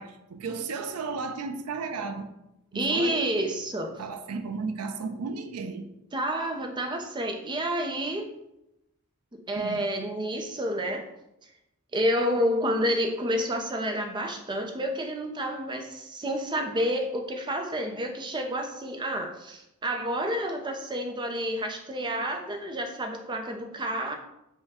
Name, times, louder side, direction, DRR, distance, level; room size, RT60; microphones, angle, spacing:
voice 1, 0.0-2.3 2.7-3.2 3.9-5.9 9.6-9.8, right 4 dB, 80° right, 7 dB, 0.5 m, -34 dB
voice 2, 2.7-4.0 6.1-8.3 9.3-11.0 11.9-24.1, equal, 20° right, 4 dB, 0.5 m, -29 dB
5.5 x 2.2 x 3.5 m, 0.87 s
head